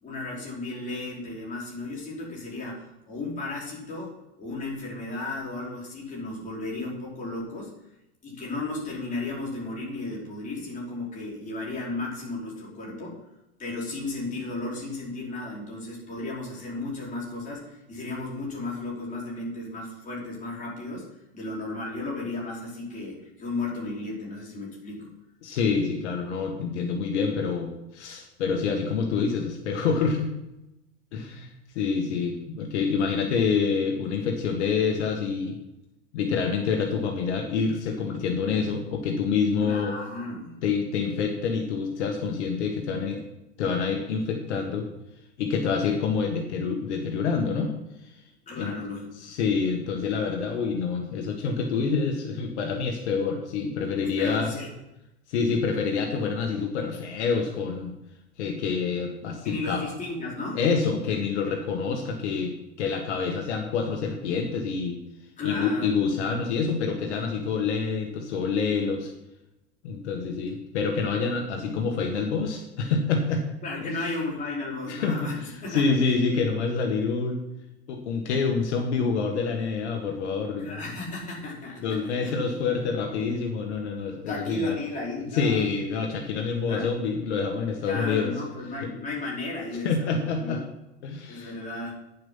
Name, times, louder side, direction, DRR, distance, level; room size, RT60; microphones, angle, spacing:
voice 1, 0.0-7.7 8.2-13.2 13.6-21.1 21.3-25.1 39.6-40.5 48.5-49.3 54.0-54.7 59.4-60.6 65.4-66.0 73.6-75.9 80.6-82.3 84.3-85.7 86.7-86.9 87.8-90.6 91.3-92.0, left 2 dB, 20° left, -4 dB, 4.8 m, -34 dB
voice 2, 25.4-30.3 31.1-35.6 36.1-39.9 40.6-43.2 43.6-44.9 45.4-47.7 48.0-48.1 48.6-48.7 49.2-54.5 55.3-57.9 58.4-59.8 60.5-65.0 65.4-69.1 69.8-73.4 73.8-73.9 74.9-77.4 77.9-80.8 81.8-84.7 85.3-88.3 88.8-88.9 89.8-90.6 91.0-91.5, left 5 dB, 75° left, 3 dB, 1.8 m, -27 dB
10.5 x 7.6 x 5.7 m, 0.90 s
supercardioid pair, 130°, 35 cm